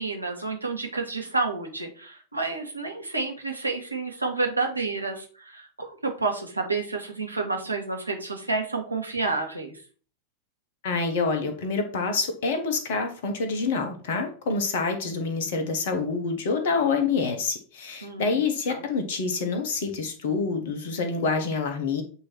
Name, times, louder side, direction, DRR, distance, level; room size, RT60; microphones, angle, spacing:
voice 1, 0.0-9.8 18.0-18.3 18.7-18.8, right 3 dB, 85° right, 2 dB, 1.4 m, -30 dB
voice 2, 10.8-22.0, left 4 dB, 55° left, 6 dB, 1.2 m, -27 dB
8.2 x 3.1 x 4.4 m, 0.41 s
figure-of-eight pair, 90°, 0 cm